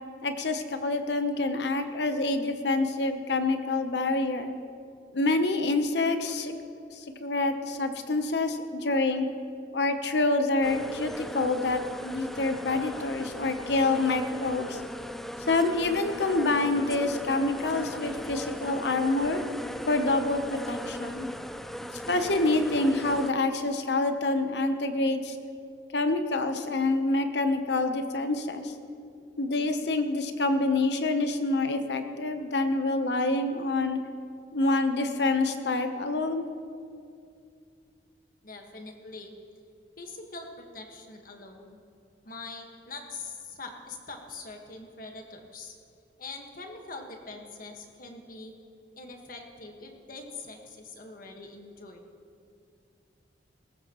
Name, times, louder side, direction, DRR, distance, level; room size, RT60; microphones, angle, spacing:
voice 1, 0.2-4.5 5.1-6.5 6.9-9.3 9.7-14.8 15.5-19.4 19.9-21.3 22.1-25.4 25.9-28.7 29.4-34.0 34.5-36.4, left 2 dB, 70° left, 8 dB, 0.9 m, -27 dB
sound 1, 10.6-23.3, equal, ahead, 0.3 m, -38 dB
voice 2, 38.4-39.3 40.0-40.5 40.7-41.8 42.2-45.7 46.2-48.6 49.0-52.0, left 3 dB, 50° left, 3 dB, 1.6 m, -43 dB
19.0 x 15.0 x 3.1 m, 2.4 s
head